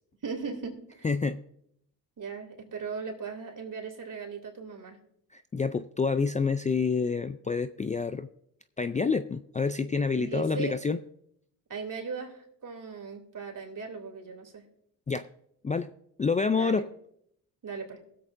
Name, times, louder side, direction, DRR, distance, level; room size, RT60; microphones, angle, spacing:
voice 1, 0.2-1.1 2.2-5.0 10.2-10.8 11.7-14.6 16.5-16.8 17.6-18.0, right 5 dB, 50° right, 2 dB, 2.9 m, -38 dB
voice 2, 1.0-1.4 5.3-8.3 8.8-11.0 15.1-15.3 15.6-15.9 16.2-16.9, left 4 dB, 20° left, 11 dB, 0.4 m, -28 dB
21.0 x 7.8 x 2.6 m, 0.73 s
supercardioid pair, 55°, 41 cm